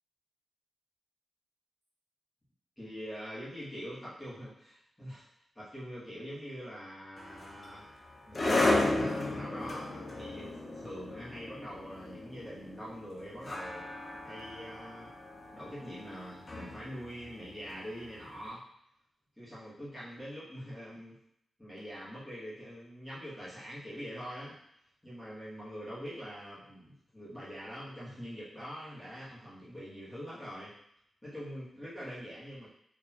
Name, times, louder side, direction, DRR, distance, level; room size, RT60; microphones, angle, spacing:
voice 1, 2.8-5.2 5.5-7.9 8.3-13.9 14.2-15.1 15.5-18.6 19.4-21.2 21.6-24.6 25.0-30.7 31.2-32.7, equal, 10° left, -10 dB, 1.4 m, -44 dB
sound 1, 7.2-18.3, left 2 dB, 30° left, 0.6 m, -34 dB
4.1 x 2.8 x 2.9 m, 0.75 s
wide cardioid pair, 135°, 0 cm